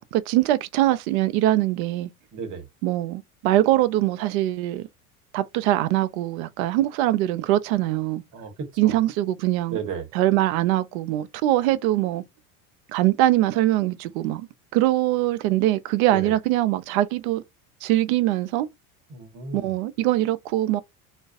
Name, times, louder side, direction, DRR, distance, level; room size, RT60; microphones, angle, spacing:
voice 1, 0.0-2.1 2.8-4.9 5.3-8.2 8.8-9.8 10.1-12.2 12.9-14.5 14.7-17.4 17.8-18.7 19.5-20.8, right 14 dB, 65° right, 0.5 m, -22 dB
voice 2, 2.3-2.6 8.3-9.0 9.7-10.1 16.1-16.3 19.1-19.8, right 6 dB, 45° right, 1.1 m, -34 dB
2.4 x 2.2 x 2.4 m
hypercardioid pair, 90°, 45 cm